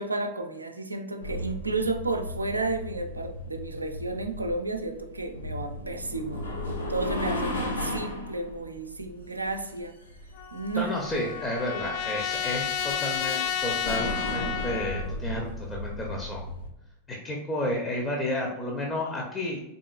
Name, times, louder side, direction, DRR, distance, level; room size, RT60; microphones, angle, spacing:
voice 1, 0.0-6.4 6.9-9.9 10.5-10.9, right 2 dB, 80° right, 6 dB, 0.4 m, -32 dB
sound 1, 1.2-16.7, left 1 dB, 75° left, 0.7 m, -36 dB
Trumpet, 10.4-15.1, left 8 dB, 45° left, 0.3 m, -31 dB
voice 2, 10.8-16.4 17.1-19.6, left 1 dB, 20° left, -1 dB, 0.7 m, -31 dB
4.0 x 3.6 x 2.3 m, 0.92 s
figure-of-eight pair, 90°, 0 cm